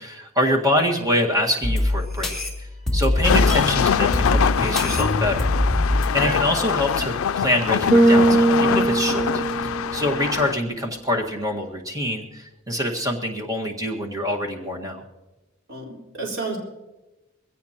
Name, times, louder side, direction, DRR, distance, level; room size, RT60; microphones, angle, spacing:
voice 1, 0.0-2.4 2.9-5.5 6.1-9.3 9.6-15.0, left 1 dB, 15° right, 1 dB, 1.7 m, -25 dB
sound 1, 1.6-7.3, left 1 dB, ahead, 2.6 m, -24 dB
sound 2, 3.2-10.5, left 7 dB, 80° left, 0.4 m, -24 dB
Bass guitar, 7.9-10.2, right 2 dB, 40° right, 0.8 m, -19 dB
voice 2, 15.7-16.6, right 2 dB, 70° right, -3 dB, 4.3 m, -30 dB
21.5 x 16.5 x 3.0 m, 1.1 s
head